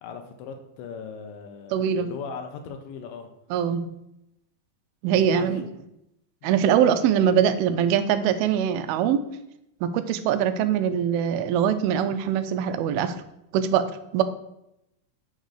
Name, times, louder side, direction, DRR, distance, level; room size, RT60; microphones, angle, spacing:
voice 1, 0.0-3.3 5.1-5.6 6.4-6.6, left 6 dB, 80° left, 6 dB, 2.2 m, -39 dB
voice 2, 1.7-2.1 3.5-3.9 5.0-5.7 6.4-9.3 9.8-13.1 13.5-13.9 14.1-14.2, right 8 dB, 85° right, 11 dB, 2.4 m, -22 dB
6.2 x 4.0 x 6.3 m, 0.83 s
omnidirectional pair, 4.2 m